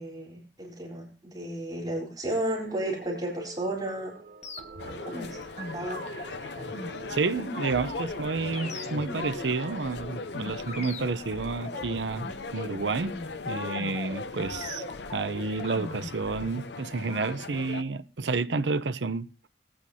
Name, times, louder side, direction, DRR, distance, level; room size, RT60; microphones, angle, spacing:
voice 1, 0.0-4.1 4.8-5.4 5.7-6.0, right 1 dB, 25° right, 3.9 m, -33 dB
sound 1, 2.6-9.8, right 3 dB, 50° right, 0.9 m, -45 dB
sound 2, 4.4-16.6, left 2 dB, 40° left, 1.4 m, -41 dB
sound 3, 4.8-17.8, left 4 dB, 70° left, 0.7 m, -39 dB
voice 2, 7.1-13.1 13.4-14.8 15.1-19.3, right 4 dB, 90° right, 0.7 m, -30 dB
20.0 x 8.8 x 2.8 m
head